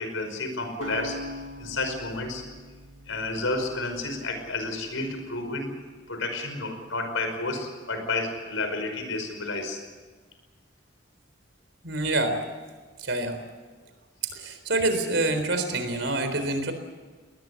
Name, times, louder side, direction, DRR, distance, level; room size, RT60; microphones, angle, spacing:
voice 1, 0.0-2.4 3.1-5.8 6.1-9.8 16.3-16.4, left 2 dB, 85° left, 7 dB, 5.3 m, -31 dB
sound 1, 0.8-4.9, equal, 85° right, 2.5 m, -42 dB
voice 2, 11.8-12.4 13.0-13.4 14.3-16.7, right 2 dB, 65° right, 8 dB, 3.9 m, -26 dB
21.5 x 20.0 x 8.4 m, 1.4 s
head